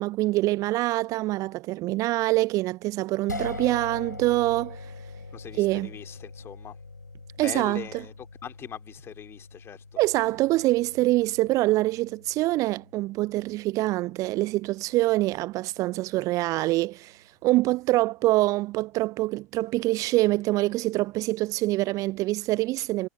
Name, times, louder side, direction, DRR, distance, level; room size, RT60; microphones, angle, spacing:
voice 1, 0.0-4.9 5.6-5.9 7.4-7.8 10.0-23.1, right 18 dB, 35° right, 0.5 m, -25 dB
sound 1, 3.3-15.6, left 3 dB, 85° left, 7.9 m, -43 dB
voice 2, 5.3-6.8 7.4-9.8, left 9 dB, 25° left, 3.1 m, -41 dB
figure-of-eight pair, 85°, 9 cm